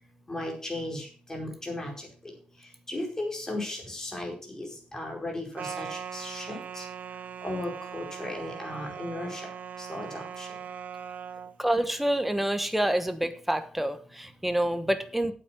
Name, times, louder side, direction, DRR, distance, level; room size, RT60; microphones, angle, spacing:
voice 1, 0.3-1.9 2.9-6.8 7.4-9.5 9.9-10.5, left 1 dB, 20° left, 0 dB, 4.7 m, -36 dB
sound 1, 5.6-11.5, right 7 dB, 65° right, 0.6 m, -40 dB
voice 2, 11.6-15.3, right 1 dB, 5° right, 9 dB, 1.2 m, -27 dB
8.6 x 8.5 x 6.0 m, 0.41 s
cardioid pair, 105°, 3 cm